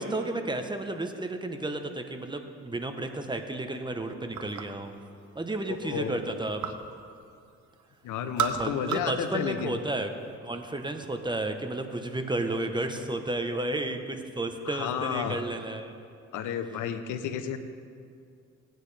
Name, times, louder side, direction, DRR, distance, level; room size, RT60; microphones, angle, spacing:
voice 1, 0.0-4.9 5.3-6.7 8.6-10.1 10.4-16.0, right 2 dB, 15° right, 6 dB, 0.9 m, -32 dB
sound 1, 4.3-4.9 5.3-6.9 7.2-7.8 8.1-9.2 9.5-10.3, right 7 dB, 70° right, 0.9 m, -34 dB
voice 2, 5.7-6.2 8.0-9.8 14.6-15.5 16.3-17.6, left 8 dB, 85° left, 10 dB, 0.8 m, -32 dB
18.0 x 9.1 x 3.3 m, 2.4 s
cardioid pair, 90°, 30 cm